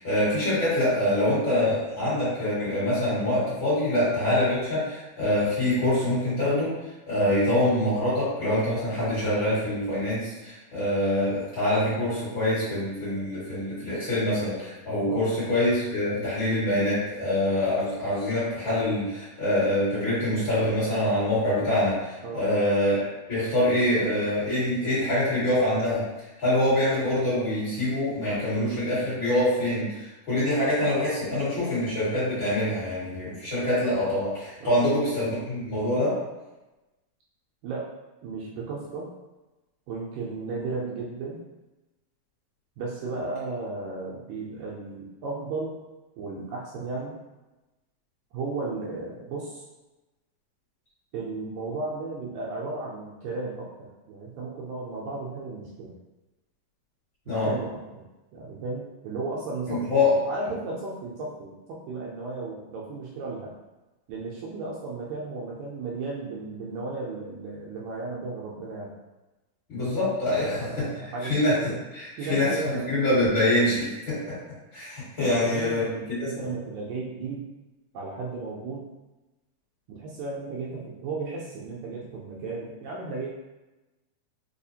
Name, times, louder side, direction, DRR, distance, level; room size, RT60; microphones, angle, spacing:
voice 1, 0.0-6.7 7.1-26.0 26.4-36.2 57.3-57.5 59.7-60.1 69.7-70.9 71.2-71.6 71.9-74.3 74.7-76.2, left 1 dB, 45° left, -10 dB, 2.0 m, -25 dB
voice 2, 37.6-37.9 38.2-39.1 39.9-41.4 42.8-45.8 46.2-47.2 48.3-49.7 51.1-55.9 57.3-58.0 58.3-63.5 64.1-68.9 70.4-71.8 72.2-73.0 75.3-77.5 77.9-78.9 79.9-83.3, right 3 dB, 80° right, -4 dB, 1.8 m, -34 dB
4.9 x 2.4 x 2.7 m, 1.1 s
omnidirectional pair, 3.7 m